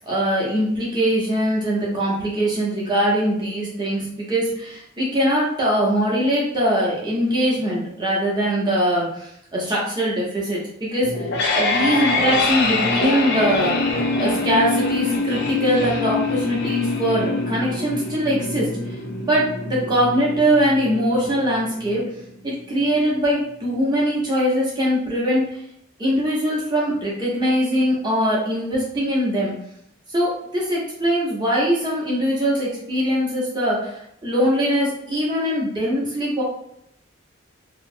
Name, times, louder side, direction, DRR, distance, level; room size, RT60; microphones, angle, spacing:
voice 1, 0.1-13.8 14.2-19.0 19.3-22.0 22.4-25.6 26.0-29.5 30.1-36.4, equal, 20° right, -5 dB, 0.7 m, -22 dB
sound 1, 11.0-22.0, left 3 dB, 50° left, 0.4 m, -24 dB
2.8 x 2.0 x 2.6 m, 0.74 s
head